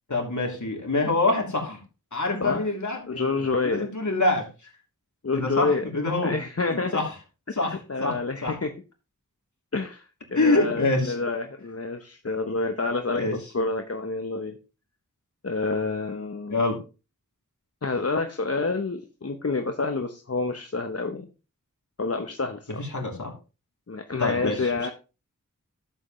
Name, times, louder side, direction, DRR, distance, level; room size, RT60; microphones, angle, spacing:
voice 1, 0.1-1.8 2.1-4.5 5.3-6.3 6.7-7.1 7.6-8.6 10.3-11.1 13.1-13.3 16.5-16.8 22.7-23.3 24.2-24.9, left 2 dB, 60° left, 0 dB, 3.2 m, -26 dB
voice 2, 3.1-3.9 5.2-5.8 6.2-7.0 7.5-8.7 9.7-13.2 13.5-14.6 15.4-16.6 17.8-21.3 22.0-22.8 23.9-24.9, left 3 dB, 45° left, 6 dB, 0.9 m, -28 dB
12.0 x 7.7 x 3.2 m, 0.32 s
wide cardioid pair, 45°, 34 cm